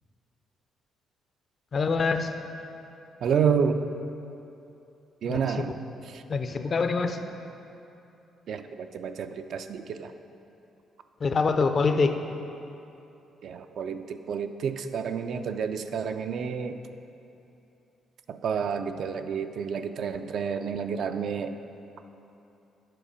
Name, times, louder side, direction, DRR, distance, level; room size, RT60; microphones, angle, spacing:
voice 1, 1.7-2.3 5.3-5.7 6.3-7.2 11.2-12.2, left 4 dB, 45° left, 7 dB, 0.5 m, -25 dB
voice 2, 3.2-3.8 5.2-5.7 6.1-6.2 8.5-10.1 13.4-16.8 18.3-21.6, right 6 dB, 65° right, 8 dB, 0.4 m, -29 dB
7.6 x 4.8 x 6.5 m, 2.8 s
cardioid pair, 90°, 0 cm